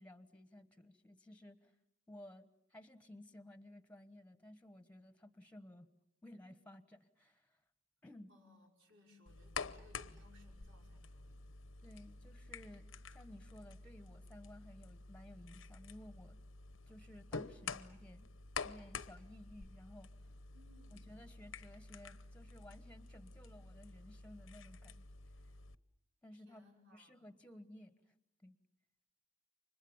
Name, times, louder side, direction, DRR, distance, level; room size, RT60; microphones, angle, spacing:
voice 1, 0.0-1.7 2.1-5.9 6.2-7.6 8.0-8.3 11.8-16.4 16.9-18.3 18.6-20.1 20.9-25.0 25.4-25.5 26.2-26.6 26.9-28.1 28.4-28.6, left 1 dB, 5° left, 13 dB, 1.2 m, -56 dB
voice 2, 8.3-11.5 20.5-21.2 26.3-27.1, left 2 dB, 80° right, 2 dB, 5.7 m, -65 dB
sound 1, 9.3-25.8, left 5 dB, 85° left, 0.9 m, -49 dB
29.5 x 25.5 x 7.2 m, 0.83 s
head